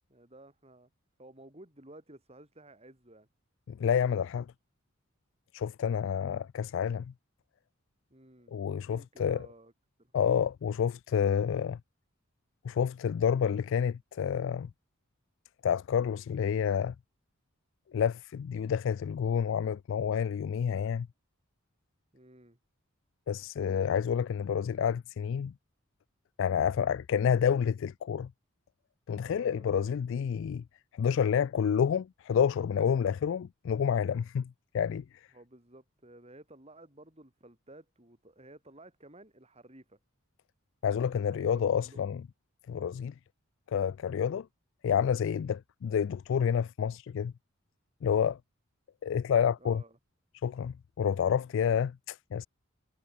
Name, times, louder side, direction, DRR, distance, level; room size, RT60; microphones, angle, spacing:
voice 1, 0.1-0.9 1.2-3.3 8.1-8.6 8.8-9.7 10.0-10.2 22.1-22.6 29.2-30.0 35.3-40.0 41.2-42.1 49.6-50.0, right 1 dB, 30° right, 5.7 m, -54 dB
voice 2, 3.7-4.5 5.5-7.1 8.5-9.5 10.1-11.8 12.6-14.7 15.6-17.0 17.9-21.1 23.3-25.5 26.4-28.3 29.1-30.6 30.9-35.0 40.8-42.2 42.7-43.1 43.7-44.5 44.8-47.3 48.0-48.4 49.0-49.8 50.4-52.5, left 7 dB, 60° left, 0.3 m, -29 dB
head